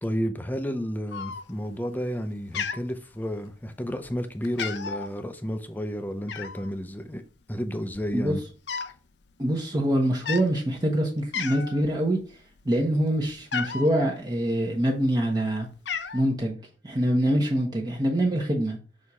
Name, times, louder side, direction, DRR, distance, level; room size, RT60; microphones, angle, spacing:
voice 1, 0.0-7.2 7.5-8.4, equal, 10° left, 0.6 m, -31 dB
Cat, 1.1-1.7 2.1-2.3 2.5-3.6 4.0-4.2 4.4-5.1 6.3-6.7 7.5-7.6 7.8-9.0 9.3-9.5 10.1-10.5 11.0-11.1 11.3-11.8 12.3-13.9 14.7-15.3 15.6-16.2, left 6 dB, 75° left, 0.6 m, -33 dB
voice 2, 9.4-12.2 12.6-15.7 16.1-16.6 16.8-18.8, right 1 dB, 25° right, 1.0 m, -24 dB
6.4 x 3.6 x 4.2 m
head